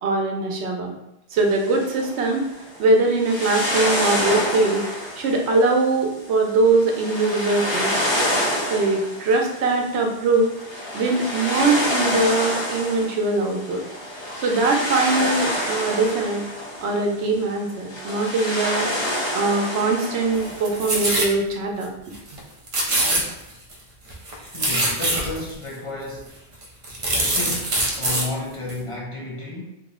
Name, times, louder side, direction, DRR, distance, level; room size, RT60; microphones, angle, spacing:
voice 1, 0.0-0.9 1.3-2.5 2.8-4.9 5.2-8.1 8.7-10.5 10.9-13.8 14.4-16.4 16.8-18.9 19.3-21.9, right 3 dB, 80° right, 1 dB, 0.9 m, -21 dB
sound 1, 1.4-20.9, left 1 dB, 30° left, 0.7 m, -28 dB
sound 2, 20.4-21.3 21.8-21.9 22.1-22.4 22.7-23.7 24.1-25.5 26.2-26.3 26.6-28.3 28.7-28.8, right 1 dB, 45° right, 0.5 m, -23 dB
voice 2, 24.5-26.3 27.1-29.8, left 2 dB, 60° left, -4 dB, 0.3 m, -32 dB
2.7 x 2.0 x 3.5 m, 0.86 s
omnidirectional pair, 1.1 m